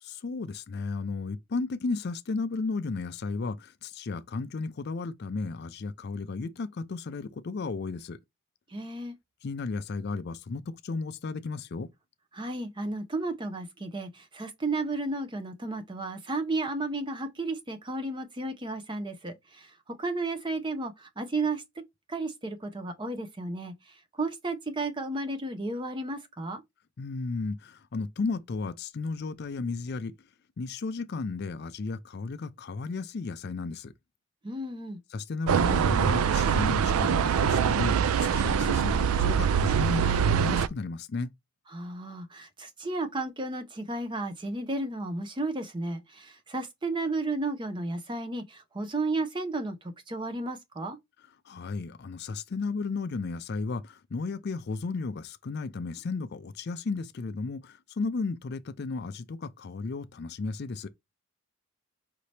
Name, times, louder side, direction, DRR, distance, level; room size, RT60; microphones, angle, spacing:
voice 1, 0.0-8.2 9.4-11.9 27.0-30.1 30.6-33.9 35.1-41.3 51.5-60.9, left 4 dB, 50° left, 0.4 m, -34 dB
voice 2, 8.7-9.1 12.3-21.6 22.1-26.6 34.4-35.0 41.7-51.0, right 2 dB, 20° right, 0.6 m, -33 dB
sound 1, 35.5-40.7, right 7 dB, 75° right, 0.3 m, -24 dB
5.1 x 2.8 x 3.2 m
head